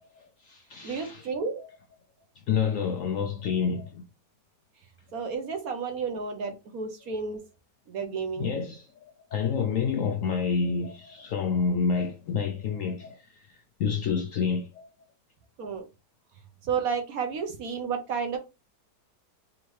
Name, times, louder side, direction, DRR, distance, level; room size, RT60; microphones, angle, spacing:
voice 1, 0.0-1.3 2.5-4.1 8.4-8.9 9.3-14.9, left 6 dB, 70° left, 0.7 m, -29 dB
voice 2, 0.8-1.6 5.1-7.4 7.9-8.5 15.6-15.8 16.6-18.4, right 5 dB, 65° right, 1.1 m, -31 dB
3.7 x 3.6 x 3.1 m
omnidirectional pair, 1.9 m